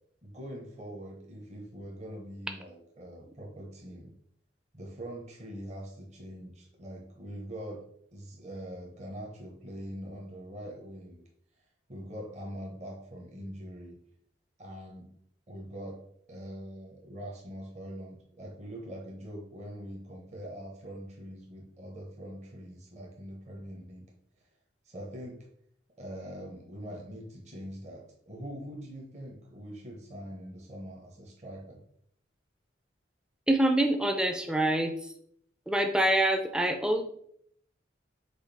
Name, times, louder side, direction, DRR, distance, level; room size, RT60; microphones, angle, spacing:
voice 1, 0.2-4.1 4.7-7.8 8.1-11.2 11.9-14.0 14.6-15.1 15.5-16.0 16.3-24.1 24.8-25.5 26.0-31.8, equal, 35° right, -1 dB, 0.8 m, -43 dB
voice 2, 33.5-34.9 35.7-37.0, right 1 dB, 5° right, 5 dB, 0.4 m, -25 dB
5.0 x 2.3 x 4.1 m, 0.67 s
head